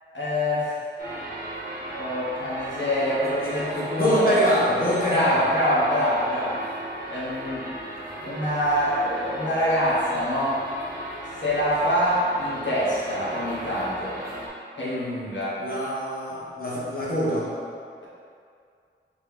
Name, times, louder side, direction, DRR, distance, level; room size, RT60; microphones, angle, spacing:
voice 1, 0.1-0.7 2.0-4.4 5.1-6.6 7.1-7.7 8.2-10.6 11.4-14.2 14.7-15.6 18.0-18.1, equal, 70° left, -8 dB, 1.3 m, -25 dB
sound 1, 1.0-14.5, right 1 dB, 50° right, 1.0 m, -36 dB
voice 2, 4.0-5.4 14.8-17.5, equal, 45° left, -7 dB, 1.2 m, -25 dB
4.3 x 3.1 x 3.5 m, 2.3 s
wide cardioid pair, 65°, 20 cm